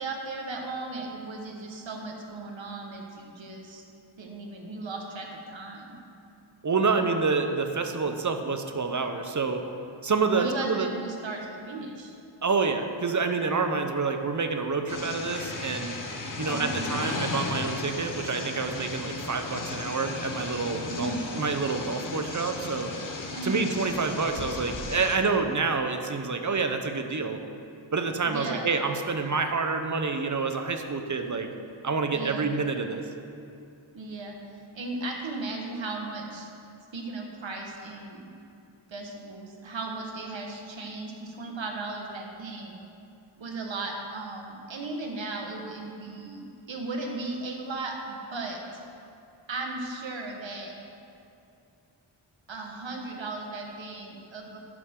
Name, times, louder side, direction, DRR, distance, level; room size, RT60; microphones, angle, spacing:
voice 1, 0.0-3.8 4.2-6.0 10.3-12.1 16.5-17.1 20.9-21.3 23.3-23.7 28.2-28.7 32.1-32.5 33.9-34.4 34.7-36.5 36.9-38.2 38.9-42.8 43.4-46.4 46.7-48.6 49.5-50.7 52.5-54.6, right 3 dB, 65° right, 1 dB, 1.7 m, -36 dB
voice 2, 6.6-9.6 10.0-10.9 12.4-15.9 16.4-22.9 23.4-27.4 27.9-31.5 31.8-33.0, right 4 dB, 40° right, 6 dB, 0.9 m, -28 dB
sound 1, 14.9-25.2, left 3 dB, 40° left, 1.0 m, -35 dB
11.0 x 11.0 x 3.8 m, 2.6 s
wide cardioid pair, 90°, 48 cm